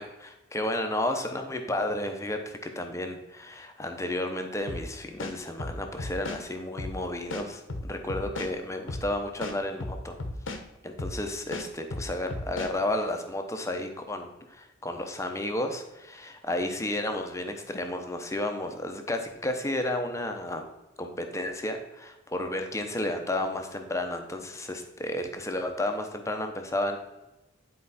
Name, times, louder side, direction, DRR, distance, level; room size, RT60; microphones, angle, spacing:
voice 1, 0.0-10.2 10.8-20.6 21.0-27.0, left 1 dB, 15° left, 5 dB, 0.8 m, -32 dB
sound 1, 4.7-4.9 5.2-6.4 6.8-7.0 7.3-8.5 8.9-9.1 9.4-10.6 11.0-11.2 11.5-12.7, left 2 dB, 80° left, 1.0 m, -35 dB
10.0 x 4.7 x 4.2 m, 1.0 s
head